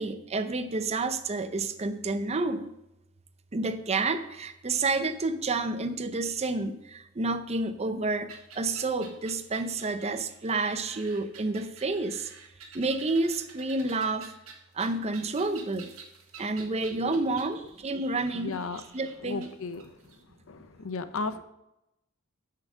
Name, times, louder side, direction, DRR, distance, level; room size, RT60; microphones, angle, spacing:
voice 1, 0.0-2.7 3.5-12.3 12.7-14.3 14.7-15.9 16.4-18.6 18.9-19.5, right 3 dB, 30° right, 9 dB, 0.6 m, -29 dB
sound 1, 8.3-20.2, right 6 dB, 75° right, 1.6 m, -49 dB
voice 2, 16.9-17.3 18.3-18.8 19.2-20.0 20.5-21.4, left 4 dB, 70° left, 12 dB, 0.7 m, -35 dB
6.9 x 5.8 x 7.2 m, 0.88 s
head